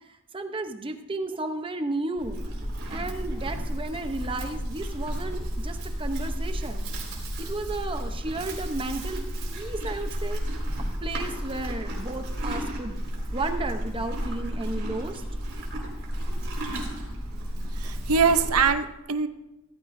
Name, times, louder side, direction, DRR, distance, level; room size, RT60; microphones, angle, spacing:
voice 1, 0.3-2.4 2.9-6.8 7.4-9.2 9.5-10.4 11.0-13.0 13.3-15.2, right 2 dB, 25° right, 7 dB, 0.8 m, -33 dB
Livestock farm animals working animals, 2.2-18.7, equal, 60° right, 4.3 m, -32 dB
voice 2, 17.5-19.3, right 5 dB, 90° right, 9 dB, 0.7 m, -23 dB
17.0 x 14.5 x 2.6 m, 0.98 s
head